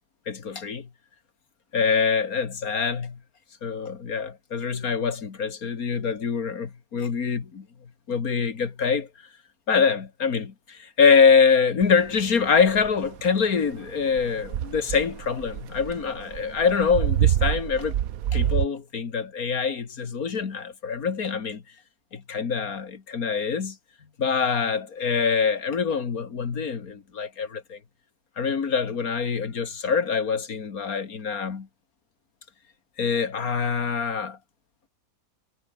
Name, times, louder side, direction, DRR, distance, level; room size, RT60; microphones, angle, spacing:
voice 1, 0.3-0.9 1.7-3.2 3.6-7.7 8.1-9.1 9.7-18.0 18.3-21.6 22.1-23.8 24.2-27.8 28.4-31.7 33.0-34.4, left 6 dB, 75° left, 2.3 m, -24 dB
sound 1, 11.8-18.7, right 11 dB, 75° right, 1.3 m, -27 dB
omnidirectional pair, 1.5 m